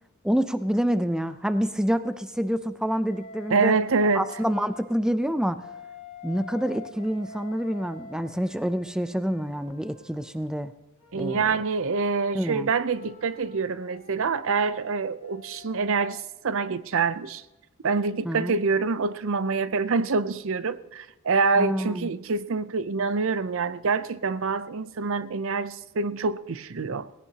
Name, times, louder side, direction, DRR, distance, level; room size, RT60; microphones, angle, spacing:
voice 1, 0.2-3.7 4.1-5.6 6.2-10.7 11.1-11.6 12.3-12.7 18.2-18.5 21.6-22.1, equal, 5° right, 0.4 m, -27 dB
Wind instrument woodwind instrument, 3.1-4.9 5.5-10.3 11.0-16.2, left 3 dB, 30° left, 3.2 m, -47 dB
voice 2, 3.5-4.3 11.1-17.4 17.8-27.1, right 4 dB, 65° right, 0.6 m, -26 dB
18.0 x 17.0 x 2.9 m
head